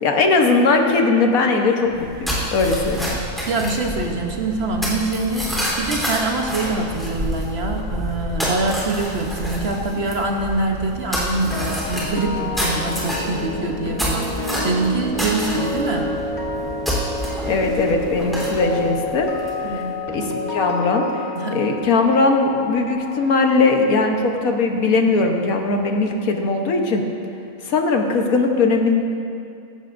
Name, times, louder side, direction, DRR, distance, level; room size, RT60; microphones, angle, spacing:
voice 1, 0.0-3.2 17.5-19.3 19.7-19.8 20.1-21.2 21.5-27.0 27.6-29.0, left 3 dB, 70° left, 3 dB, 1.5 m, -19 dB
sound 1, 1.9-19.8, equal, ahead, 3.5 m, -28 dB
voice 2, 3.5-16.1 19.6-20.0 21.3-21.6, right 2 dB, 50° right, 2 dB, 1.1 m, -24 dB
sound 2, 11.3-25.4 25.6-25.9, left 2 dB, 45° left, 2.0 m, -30 dB
16.0 x 15.5 x 2.6 m, 2.5 s
omnidirectional pair, 1.6 m